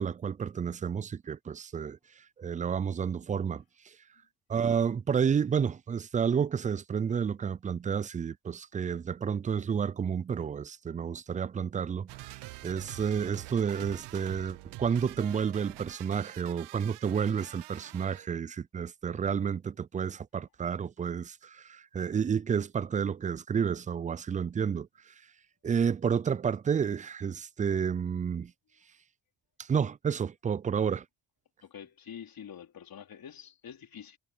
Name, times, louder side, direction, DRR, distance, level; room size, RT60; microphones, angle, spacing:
voice 1, 0.0-2.0 2.4-3.6 4.5-24.9 25.6-28.5 29.6-31.0, right 7 dB, 20° right, 0.4 m, -30 dB
sound 1, 12.1-18.3, right 22 dB, 85° right, 0.9 m, -46 dB
voice 2, 31.6-34.2, left 8 dB, 60° left, 4.4 m, -46 dB
supercardioid pair, 60°, 41 cm